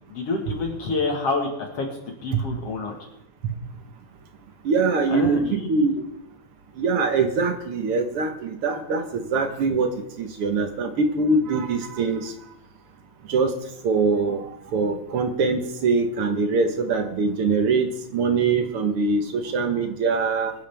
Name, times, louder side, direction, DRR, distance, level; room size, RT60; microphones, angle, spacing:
voice 1, 0.1-2.9 5.1-5.7, left 3 dB, 55° left, 2 dB, 2.5 m, -28 dB
voice 2, 4.7-6.0 6.8-12.3 13.3-13.5 13.8-14.5 14.7-20.5, right 4 dB, 55° right, 6 dB, 1.8 m, -23 dB
23.0 x 10.0 x 3.5 m, 0.76 s
omnidirectional pair, 3.5 m